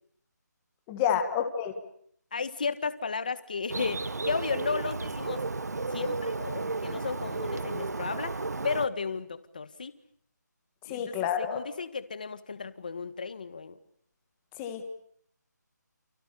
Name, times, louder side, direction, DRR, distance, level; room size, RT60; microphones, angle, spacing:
voice 1, 0.9-1.7 10.8-11.6 14.6-14.9, left 8 dB, 5° left, 6 dB, 1.5 m, -29 dB
voice 2, 2.3-5.4 5.9-9.9 10.9-13.8, left 5 dB, 25° left, 13 dB, 1.6 m, -34 dB
Bird, 3.7-8.9, right 3 dB, 60° right, 1.7 m, -33 dB
29.5 x 29.0 x 6.9 m, 0.65 s
figure-of-eight pair, 180°, 10 cm